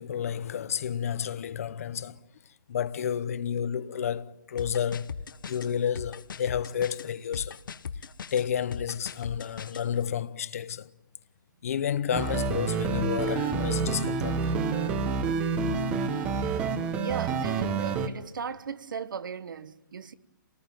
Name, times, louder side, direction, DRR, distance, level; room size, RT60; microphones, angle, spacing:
voice 1, 0.0-2.2 2.7-5.1 5.5-7.6 8.3-10.9 11.6-14.5, left 8 dB, 45° left, 0.8 m, -31 dB
sound 1, 4.6-9.9, left 6 dB, 80° left, 1.0 m, -39 dB
sound 2, 12.1-18.1, right 5 dB, 10° right, 0.9 m, -28 dB
voice 2, 17.0-20.1, right 6 dB, 75° right, 1.3 m, -37 dB
27.0 x 19.0 x 9.1 m
hypercardioid pair, 175°, 11 cm